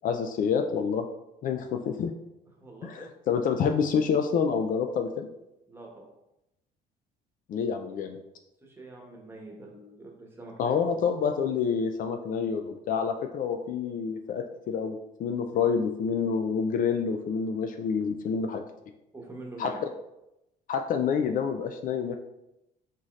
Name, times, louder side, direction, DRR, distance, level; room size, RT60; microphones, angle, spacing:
voice 1, 0.0-1.1 1.4-2.1 2.8-5.3 7.5-8.2 10.6-18.6 19.6-19.7 20.7-22.2, left 6 dB, 55° left, 5 dB, 0.4 m, -28 dB
voice 2, 2.6-3.1 5.7-6.1 8.6-10.8 19.1-19.8, right 2 dB, 15° right, -1 dB, 1.1 m, -45 dB
4.1 x 3.7 x 3.1 m, 0.88 s
cardioid pair, 110°, 17 cm